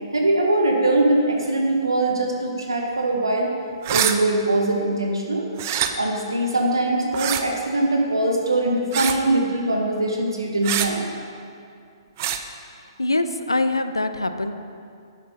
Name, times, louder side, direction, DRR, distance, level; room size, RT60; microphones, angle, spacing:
voice 1, 0.1-3.5 3.9-5.5 5.9-11.1, right 2 dB, 75° right, 1 dB, 1.1 m, -22 dB
sound 1, 3.8-4.2 5.6-5.9 7.1-7.4 8.9-9.2 10.6-10.9 12.2-12.4, right 10 dB, 40° right, 0.5 m, -24 dB
voice 2, 13.0-14.6, left 2 dB, 80° left, 9 dB, 0.5 m, -23 dB
11.0 x 10.0 x 2.8 m, 2.4 s
figure-of-eight pair, 120°, 2 cm